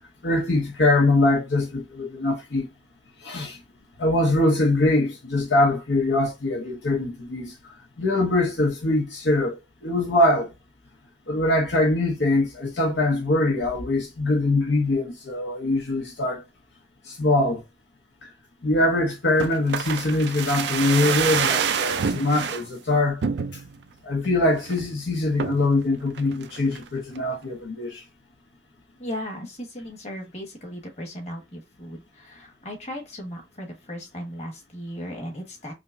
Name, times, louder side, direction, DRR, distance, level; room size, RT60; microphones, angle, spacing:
voice 1, 0.2-2.7 3.2-3.6 4.0-7.5 8.0-9.6 9.8-10.5 11.3-16.4 17.1-17.6 18.6-23.2 24.0-28.0, left 2 dB, 70° left, 0.8 m, -23 dB
sound 1, 19.4-22.6 23.2-23.8 24.2-24.3 24.6-24.9 25.4-25.7 26.2-26.9 27.2-27.3, right 6 dB, 65° right, 0.4 m, -27 dB
voice 2, 29.0-35.7, equal, 35° left, 1.5 m, -36 dB
5.0 x 2.0 x 2.5 m
head